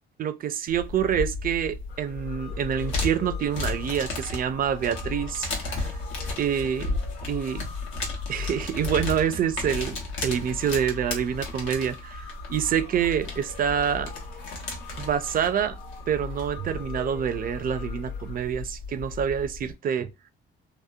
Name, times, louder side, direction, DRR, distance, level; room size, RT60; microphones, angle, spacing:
voice 1, 0.2-5.9 6.4-7.0 7.3-7.6 8.3-14.1 15.0-15.8 16.1-20.1, right 8 dB, 45° right, 0.4 m, -27 dB
sound 1, 0.7-19.7, left 3 dB, 90° left, 0.9 m, -34 dB
sound 2, 1.9-18.4, left 6 dB, 55° left, 0.7 m, -46 dB
2.8 x 2.0 x 2.3 m
cardioid pair, 90°, 20 cm